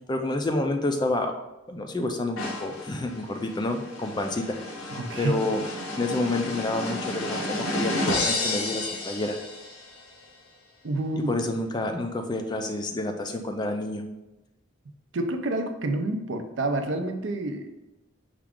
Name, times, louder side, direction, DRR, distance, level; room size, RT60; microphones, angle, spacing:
voice 1, 0.1-1.3 1.7-4.9 5.2-5.6 6.0-9.4 11.3-14.0, left 2 dB, 20° left, 5 dB, 0.3 m, -29 dB
sound 1, 2.4-9.9, left 2 dB, 90° left, 0.8 m, -31 dB
voice 2, 4.9-5.4 10.8-11.3 15.1-17.9, right 2 dB, 60° right, 6 dB, 0.5 m, -28 dB
5.9 x 2.4 x 3.5 m, 0.97 s
head